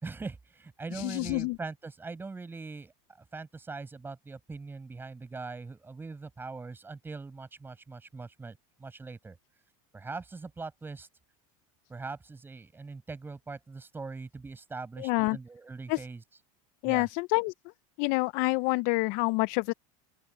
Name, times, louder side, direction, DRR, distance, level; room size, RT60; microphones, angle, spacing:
voice 1, 0.0-2.9 3.3-9.4 9.9-11.1 11.9-16.2 16.8-17.1, right 4 dB, 10° right, 6.2 m, -41 dB
voice 2, 0.9-1.6 15.0-15.4 15.9-16.1 16.8-17.5 18.0-19.7, left 25 dB, 55° left, 0.4 m, -27 dB
open air
supercardioid pair, 145°, 17 cm